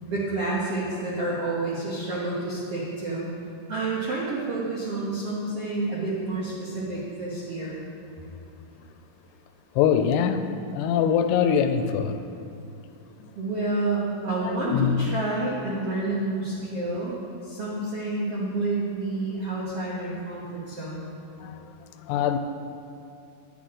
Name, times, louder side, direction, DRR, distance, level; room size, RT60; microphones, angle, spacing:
voice 1, 0.1-3.3 3.7-7.8 13.3-21.1, right 2 dB, 85° right, -6 dB, 1.3 m, -29 dB
voice 2, 9.8-12.3 13.2-13.3 14.4-15.1 21.4-21.6 22.1-22.4, left 8 dB, 85° left, 8 dB, 2.5 m, -23 dB
10.5 x 9.4 x 3.7 m, 2.7 s
omnidirectional pair, 4.7 m